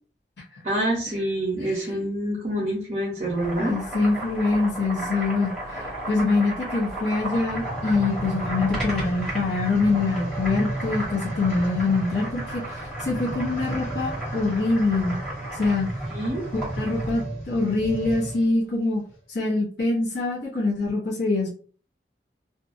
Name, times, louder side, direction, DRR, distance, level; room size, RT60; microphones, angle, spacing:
voice 1, 0.6-3.7 16.1-16.4, right 1 dB, 40° right, -6 dB, 0.8 m, -27 dB
voice 2, 1.6-2.0 3.6-5.5 6.1-15.2 15.5-15.9 16.5-19.0 19.3-21.5, left 3 dB, 75° left, -4 dB, 0.8 m, -24 dB
Boiling, 3.2-17.2, right 1 dB, 5° left, 1.2 m, -35 dB
sound 1, 7.3-18.5 19.1-19.2, right 1 dB, 40° left, 1.4 m, -34 dB
2.6 x 2.6 x 2.5 m, 0.42 s
head